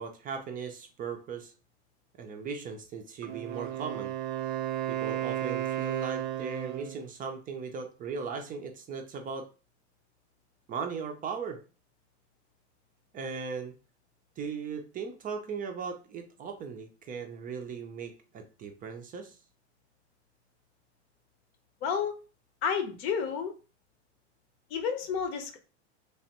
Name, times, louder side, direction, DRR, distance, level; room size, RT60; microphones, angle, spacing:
voice 1, 0.0-1.5 2.2-4.1 4.9-9.5 10.7-11.6 13.1-13.7 14.4-19.4, right 5 dB, 25° right, 4 dB, 0.4 m, -38 dB
Wind instrument woodwind instrument, 3.2-7.1, right 12 dB, 85° right, 0.6 m, -33 dB
voice 2, 21.8-22.1 22.6-23.5 24.7-25.6, left 6 dB, 65° left, 6 dB, 0.8 m, -30 dB
3.2 x 2.1 x 2.8 m, 0.34 s
hypercardioid pair, 110°, 34 cm